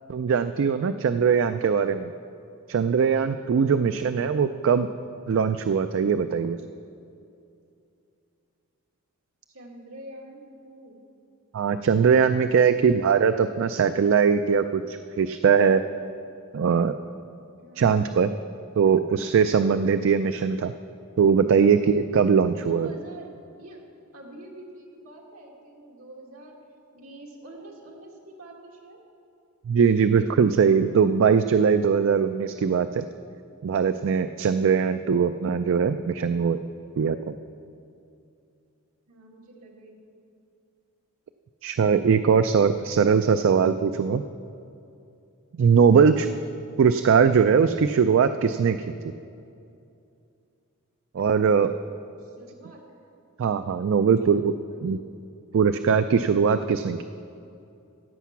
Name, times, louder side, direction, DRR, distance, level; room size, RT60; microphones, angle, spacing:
voice 1, 0.1-2.1 2.7-4.9 5.3-6.6 11.5-15.8 16.5-17.0 17.8-18.3 18.8-20.7 21.2-22.9 29.7-33.0 33.6-36.6 37.0-37.3 41.6-44.2 45.6-46.3 46.8-48.8 51.1-51.7 53.4-54.5 54.8-55.0 55.5-57.0, right 6 dB, 60° right, 10 dB, 0.3 m, -21 dB
voice 2, 9.5-11.0 17.6-17.9 21.6-21.9 22.3-23.3 23.6-23.8 24.1-26.6 26.9-29.0 39.1-40.2 52.2-52.8 54.7-54.9, right 1 dB, 75° right, -1 dB, 2.1 m, -46 dB
14.0 x 8.2 x 5.9 m, 2.6 s
head